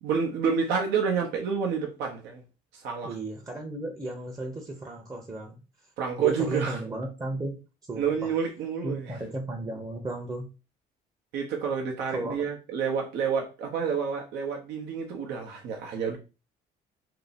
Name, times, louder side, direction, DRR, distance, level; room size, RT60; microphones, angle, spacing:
voice 1, 0.0-2.4 2.7-3.1 6.0-6.8 8.0-9.0 11.3-16.2, right 6 dB, 80° right, 0.7 m, -29 dB
voice 2, 3.0-5.6 6.2-7.6 7.9-8.3 8.8-10.5 12.1-12.5, right 2 dB, 20° right, 0.7 m, -34 dB
2.9 x 2.7 x 4.0 m
cardioid pair, 110°, 17 cm